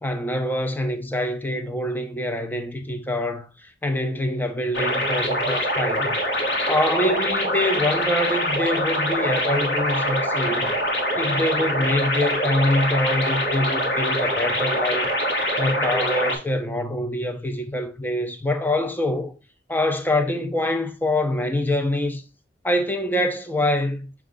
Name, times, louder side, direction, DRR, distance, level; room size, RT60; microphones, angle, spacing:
voice 1, 0.0-6.2 6.7-10.7 11.2-15.1 15.6-19.3 19.7-22.2 22.6-24.1, left 1 dB, 10° left, 0.5 m, -25 dB
sound 1, 4.7-16.4, equal, 90° left, 1.3 m, -24 dB
6.2 x 2.4 x 3.7 m
head